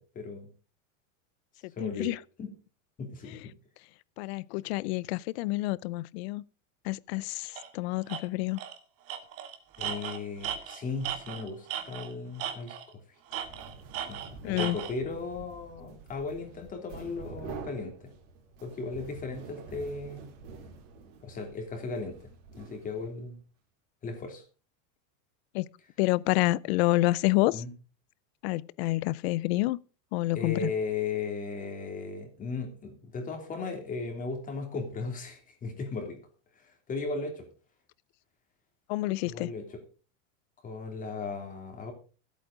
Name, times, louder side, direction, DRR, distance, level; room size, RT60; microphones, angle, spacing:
voice 1, 0.1-0.5 1.8-2.1 2.4-2.5 3.0-3.5 9.8-12.7 14.1-14.2 14.4-18.1 18.6-20.3 21.2-22.3 22.6-23.4 24.0-24.4 27.5-27.7 30.3-36.2 36.9-37.4 39.2-39.6 40.6-41.9, left 4 dB, 20° left, 3.1 m, -36 dB
voice 2, 1.6-2.2 3.2-3.4 4.2-6.4 6.8-8.6 14.4-14.8 25.5-25.7 26.0-27.6 28.4-29.8 30.1-30.7 38.9-39.5, left 19 dB, 55° left, 0.6 m, -28 dB
Tools, 7.6-7.7 8.1-8.2 8.6-8.8 9.1-12.1 12.4-12.9 13.3-14.9, right 9 dB, 35° right, 1.7 m, -36 dB
sound 1, 13.3-23.3, right 4 dB, 65° right, 3.8 m, -47 dB
15.0 x 8.5 x 5.0 m
supercardioid pair, 165°, 39 cm